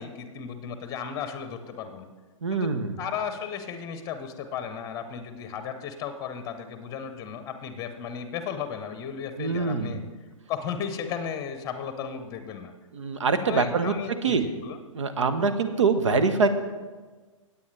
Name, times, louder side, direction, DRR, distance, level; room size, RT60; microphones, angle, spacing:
voice 1, 0.0-2.1 2.5-2.7 3.0-10.0 10.5-12.7 13.4-14.8, left 7 dB, 20° left, 9 dB, 0.9 m, -35 dB
voice 2, 2.4-2.9 9.4-10.0 12.9-13.9 14.2-14.4 14.9-16.5, right 4 dB, 60° right, 9 dB, 1.0 m, -24 dB
16.5 x 8.6 x 3.3 m, 1.3 s
figure-of-eight pair, 115°, 17 cm